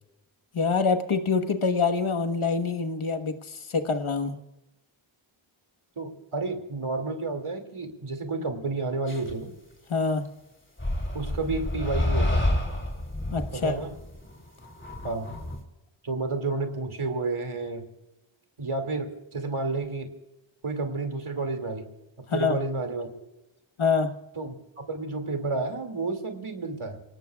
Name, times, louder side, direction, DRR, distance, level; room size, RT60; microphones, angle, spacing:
voice 1, 0.5-4.4 9.9-10.2 13.3-13.7 22.3-22.6 23.8-24.1, left 5 dB, 75° left, 8 dB, 1.4 m, -25 dB
voice 2, 6.0-9.5 11.1-12.5 13.5-13.9 15.0-15.4 16.0-17.9 18.6-20.1 20.6-21.9 22.3-23.1 24.4-27.0, right 3 dB, 80° right, 6 dB, 2.5 m, -31 dB
sound 1, 9.1-9.3 10.8-15.6, left 1 dB, 25° left, 3.3 m, -29 dB
28.0 x 18.5 x 2.4 m, 0.96 s
wide cardioid pair, 60°, 49 cm